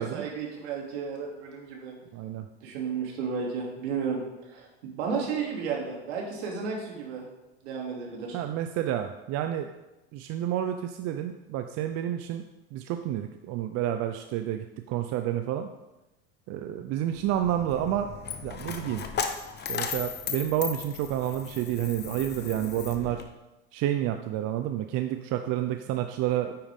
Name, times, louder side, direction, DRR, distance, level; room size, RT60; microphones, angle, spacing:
voice 1, 0.0-2.0 2.6-4.2 4.5-7.2 7.6-8.4, right 5 dB, 75° right, -1 dB, 2.9 m, -33 dB
voice 2, 2.1-2.5 8.3-9.7 10.1-12.4 12.7-15.7 16.5-18.1 18.4-19.1 19.6-23.2 23.7-26.6, right 11 dB, 50° right, 7 dB, 0.6 m, -29 dB
Coin (dropping), 17.1-23.2, left 7 dB, 30° left, 1.0 m, -36 dB
8.9 x 8.8 x 3.7 m, 1.0 s
supercardioid pair, 105°, 33 cm